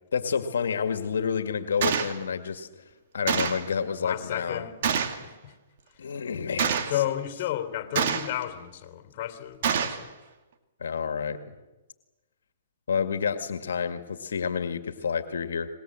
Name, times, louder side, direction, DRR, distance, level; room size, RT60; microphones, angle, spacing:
voice 1, 0.1-2.8 3.1-4.6 6.0-6.9 10.8-11.4 12.9-15.7, left 6 dB, 80° left, 9 dB, 2.0 m, -29 dB
Gunshot gunfire, 1.8-2.1 3.3-3.7 4.8-5.2 6.6-7.0 8.0-8.4 9.6-10.0, right 7 dB, 55° right, 2.4 m, -26 dB
voice 2, 4.0-5.5 5.9-6.0 6.9-10.2, left 12 dB, 45° left, 9 dB, 3.6 m, -33 dB
25.5 x 21.0 x 7.7 m, 1.1 s
hypercardioid pair, 140°, 0 cm